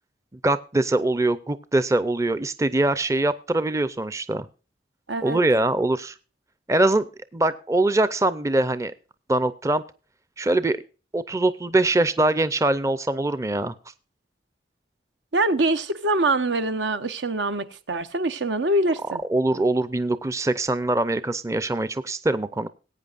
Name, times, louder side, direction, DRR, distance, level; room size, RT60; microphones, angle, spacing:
voice 1, 0.4-4.5 5.2-6.1 6.7-7.1 7.3-8.9 9.3-9.8 10.4-10.8 11.1-13.7 19.3-22.7, right 2 dB, 15° right, 0.5 m, -23 dB
voice 2, 5.1-5.4 15.3-19.2, right 2 dB, 80° right, 0.9 m, -24 dB
20.0 x 8.9 x 2.5 m
head